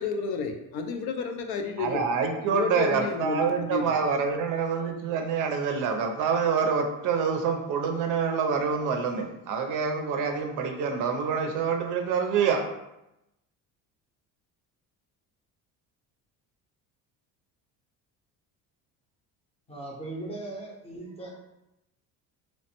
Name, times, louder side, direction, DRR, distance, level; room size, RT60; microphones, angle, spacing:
voice 1, 0.0-2.1 2.4-3.9, left 5 dB, 75° left, 5 dB, 0.5 m, -31 dB
voice 2, 1.8-12.6, right 6 dB, 55° right, 4 dB, 0.4 m, -26 dB
voice 3, 19.7-21.3, right 2 dB, 15° left, -2 dB, 0.6 m, -38 dB
3.0 x 2.1 x 2.8 m, 0.89 s
cardioid pair, 125°, 37 cm